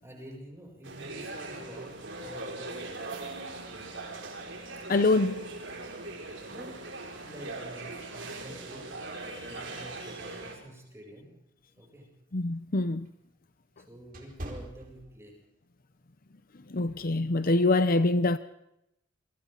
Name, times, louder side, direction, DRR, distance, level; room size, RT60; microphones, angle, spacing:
voice 1, 0.0-3.2 6.5-6.8 7.2-8.9 9.5-11.3 11.8-12.1 13.9-15.3, right 1 dB, 15° right, 7.8 m, -48 dB
sound 1, 0.8-10.6, right 2 dB, 65° right, 5.7 m, -40 dB
voice 2, 4.9-5.4 12.3-13.1 16.7-18.4, left 2 dB, 45° left, 0.8 m, -24 dB
sound 2, 11.9-15.6 16.0-16.3 16.9-17.1, right 1 dB, 45° right, 4.6 m, -45 dB
28.5 x 24.0 x 4.0 m
head